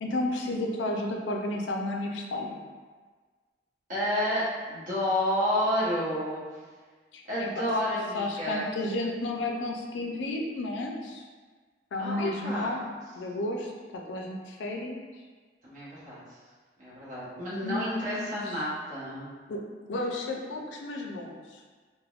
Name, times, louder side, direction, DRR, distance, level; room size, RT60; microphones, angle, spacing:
voice 1, 0.0-2.6 7.1-7.7 8.1-11.2 11.9-12.8 13.1-15.0 17.6-18.3 19.5-19.6 19.9-21.4, left 2 dB, 90° left, 1 dB, 0.4 m, -32 dB
voice 2, 3.9-6.4 7.3-8.6 12.0-12.7 15.6-16.4 16.8-19.3, equal, 45° right, -9 dB, 0.9 m, -30 dB
3.4 x 2.1 x 2.3 m, 1.5 s
head